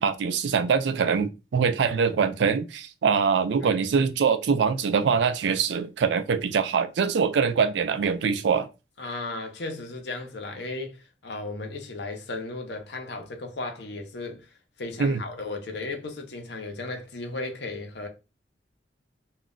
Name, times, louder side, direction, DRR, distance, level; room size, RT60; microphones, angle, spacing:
voice 1, 0.0-8.7 15.0-15.2, right 6 dB, 75° right, 0.4 m, -23 dB
voice 2, 9.0-18.1, left 2 dB, 75° left, 0.7 m, -35 dB
2.3 x 2.1 x 3.7 m
head